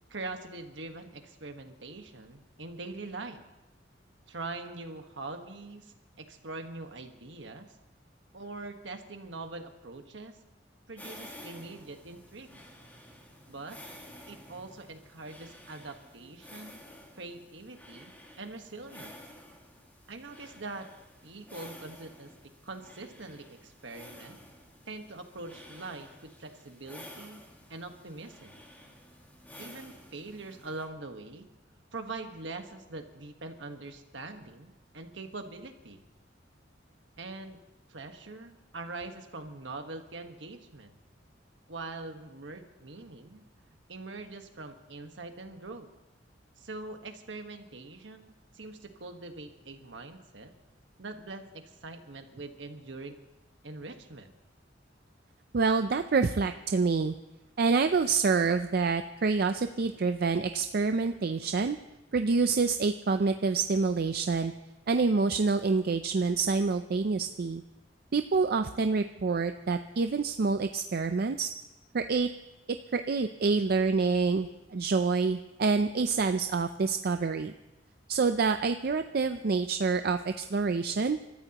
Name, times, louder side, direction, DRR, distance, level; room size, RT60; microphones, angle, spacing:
voice 1, 0.1-3.4 4.3-7.7 8.3-10.4 10.9-12.6 13.5-13.8 14.3-16.8 17.2-18.1 18.4-19.1 20.1-20.9 21.2-22.3 22.6-24.4 24.9-27.4 27.7-28.6 29.6-31.5 31.9-36.0 37.2-37.6 37.9-40.9 41.7-43.4 43.9-45.9 46.6-50.5 51.0-53.2 53.6-54.3, right 3 dB, 75° right, 6 dB, 1.4 m, -43 dB
sound 1, 11.0-30.9, left 1 dB, 10° left, 2.0 m, -52 dB
voice 2, 55.5-57.2 57.6-61.8 62.1-64.5 64.9-67.6 68.1-71.5 71.9-72.3 72.9-77.5 78.1-81.2, right 4 dB, 55° right, 8 dB, 0.5 m, -27 dB
29.0 x 13.5 x 3.0 m, 1.0 s
head